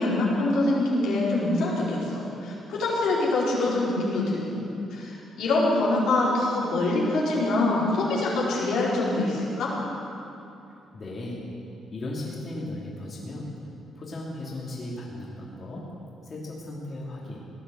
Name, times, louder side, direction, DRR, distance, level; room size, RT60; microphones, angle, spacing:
voice 1, 0.0-4.6 4.9-9.7, left 2 dB, 85° left, -6 dB, 4.6 m, -25 dB
voice 2, 10.7-11.5 11.9-13.7 13.9-16.0 16.2-17.4, left 1 dB, 40° left, -4 dB, 3.1 m, -36 dB
17.5 x 10.5 x 7.8 m, 2.7 s
cardioid pair, 90°, 0 cm